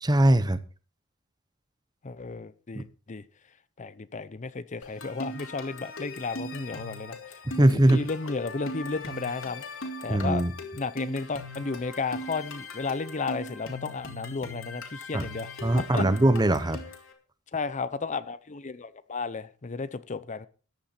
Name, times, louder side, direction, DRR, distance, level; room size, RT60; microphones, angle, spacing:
voice 1, 0.0-0.6 2.7-2.8 7.5-8.0 10.1-10.5 15.1-15.2 15.6-16.8, right 1 dB, 20° right, 0.9 m, -21 dB
voice 2, 2.0-3.2 3.8-9.6 10.0-10.4 10.8-16.0 17.5-20.5, left 4 dB, 35° left, 0.6 m, -33 dB
sound 1, 4.8-17.1, left 2 dB, 65° left, 3.1 m, -40 dB
14.5 x 10.5 x 4.3 m
head